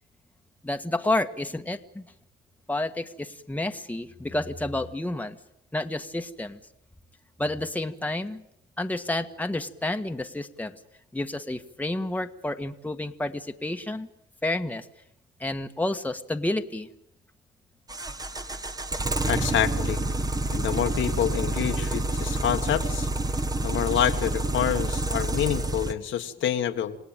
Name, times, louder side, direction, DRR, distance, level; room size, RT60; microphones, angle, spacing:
voice 1, 0.6-2.1 2.7-5.4 5.7-6.6 7.4-8.4 8.8-10.8 11.1-14.1 14.4-14.9 15.4-16.9, left 2 dB, 10° left, 5 dB, 1.6 m, -30 dB
sound 1, 17.9-25.9, right 2 dB, 20° right, 1.5 m, -28 dB
voice 2, 19.3-20.0 20.5-23.1 23.6-27.0, left 10 dB, 75° left, 5 dB, 1.7 m, -27 dB
28.0 x 18.0 x 9.2 m, 0.80 s
cardioid pair, 90°, 20 cm